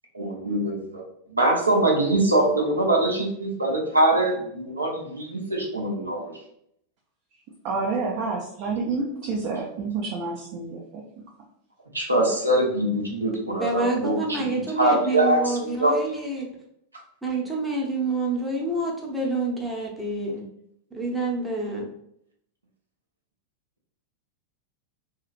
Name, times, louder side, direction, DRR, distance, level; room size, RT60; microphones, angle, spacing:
voice 1, 0.1-1.0 1.3-6.3 11.9-14.4 14.8-16.2, right 1 dB, 80° right, 0.8 m, -23 dB
voice 2, 7.6-11.0, right 4 dB, 45° right, 0.5 m, -29 dB
voice 3, 13.2-16.5 17.2-20.5 20.9-21.9, right 2 dB, 5° right, 0.7 m, -28 dB
2.8 x 2.8 x 2.4 m
figure-of-eight pair, 90°, 0 cm